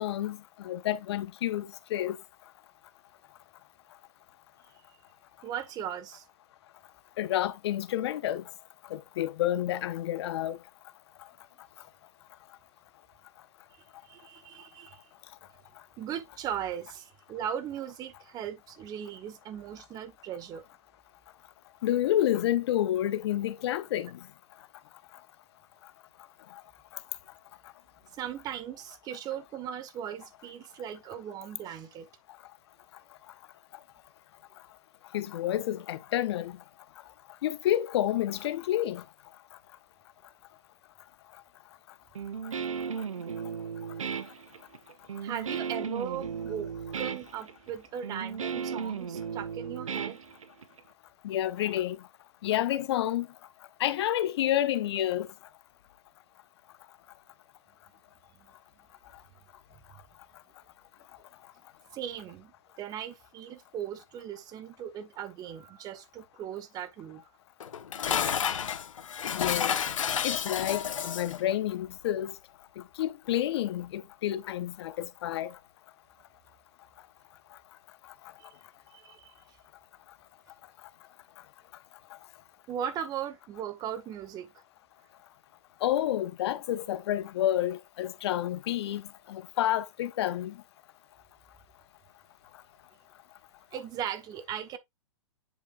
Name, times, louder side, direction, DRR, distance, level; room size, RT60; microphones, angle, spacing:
voice 1, 0.0-2.2 7.2-8.4 8.9-10.6 21.8-24.2 35.1-36.6 37.4-39.0 51.2-52.0 52.4-53.3 53.8-55.3 69.3-69.8 70.2-72.3 72.8-75.6 85.8-90.6, left 12 dB, 55° left, 0.9 m, -29 dB
voice 2, 5.4-6.2 14.0-15.0 16.0-20.7 28.1-32.1 45.2-50.2 58.4-58.5 59.7-59.8 61.9-67.3 78.4-78.6 78.9-79.3 82.7-84.5 93.7-94.8, right 9 dB, 25° right, 1.0 m, -38 dB
Guitar, 42.2-50.8, right 6 dB, 85° right, 0.9 m, -35 dB
Dishes pots and pans, 67.6-71.4, left 8 dB, 75° left, 1.1 m, -30 dB
10.0 x 4.6 x 2.4 m
hypercardioid pair, 130°, 17 cm